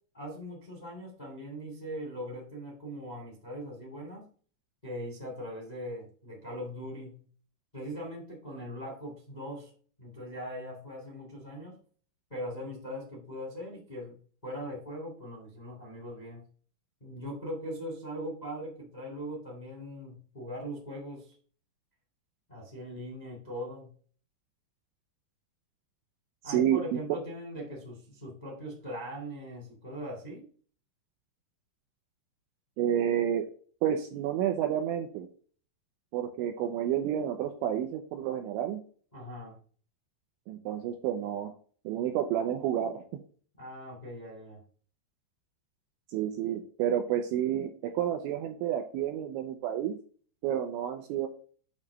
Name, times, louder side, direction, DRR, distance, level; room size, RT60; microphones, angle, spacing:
voice 1, 0.1-4.3 4.8-7.2 7.7-9.7 10.0-11.8 12.3-14.1 14.4-16.4 17.0-21.3 22.5-23.9 26.4-30.4 39.1-39.6 43.6-44.6, equal, 25° left, -2 dB, 0.9 m, -40 dB
voice 2, 26.4-27.2 32.8-33.5 33.8-35.3 36.1-38.8 40.5-41.5 41.9-43.0 46.1-50.0 50.4-51.3, right 10 dB, 80° right, 4 dB, 2.8 m, -30 dB
8.7 x 3.2 x 4.9 m, 0.43 s
omnidirectional pair, 5.9 m